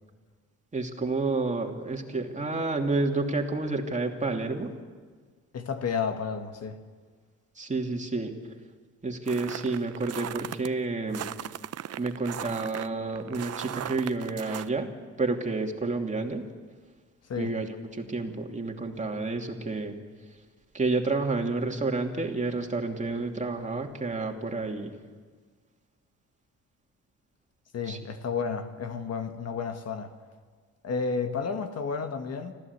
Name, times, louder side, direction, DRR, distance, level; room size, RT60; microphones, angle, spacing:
voice 1, 0.7-4.7 7.6-8.4 9.0-11.3 12.0-14.9 15.2-16.5 17.3-20.0 20.7-24.9 27.9-28.0, right 3 dB, 25° right, 2 dB, 2.7 m, -30 dB
voice 2, 5.5-6.8 17.3-17.5 27.7-30.1 30.8-32.5, left 5 dB, 55° left, 7 dB, 1.8 m, -31 dB
sound 1, 9.3-10.7 11.1-14.7, right 11 dB, 55° right, 0.7 m, -37 dB
25.5 x 15.5 x 8.3 m, 1.6 s
cardioid pair, 90°, 30 cm